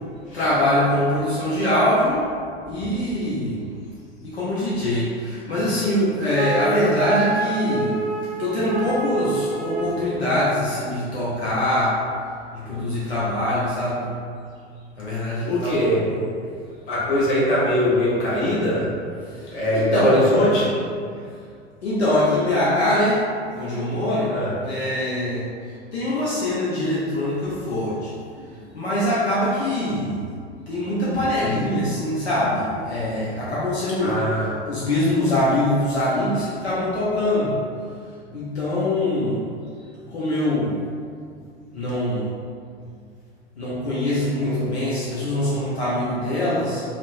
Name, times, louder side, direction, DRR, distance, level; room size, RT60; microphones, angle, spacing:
voice 1, 0.3-2.3 2.7-3.6 4.2-8.0 8.4-12.0 12.5-14.1 15.0-16.2 19.3-20.2 21.8-23.2 23.5-25.5 25.9-28.1 28.7-30.2 30.7-34.2 34.6-37.6 38.3-39.4 40.1-40.8 41.7-42.3 43.6-46.8, left 1 dB, 75° left, -9 dB, 0.6 m, -23 dB
Wind instrument woodwind instrument, 6.3-10.0, right 2 dB, 20° right, 0.6 m, -27 dB
voice 2, 15.4-16.0 16.9-18.9 19.5-20.7 24.3-24.5 34.0-34.5 44.4-44.5, left 1 dB, 45° left, -8 dB, 1.1 m, -21 dB
2.9 x 2.1 x 2.6 m, 2.2 s
figure-of-eight pair, 85°, 33 cm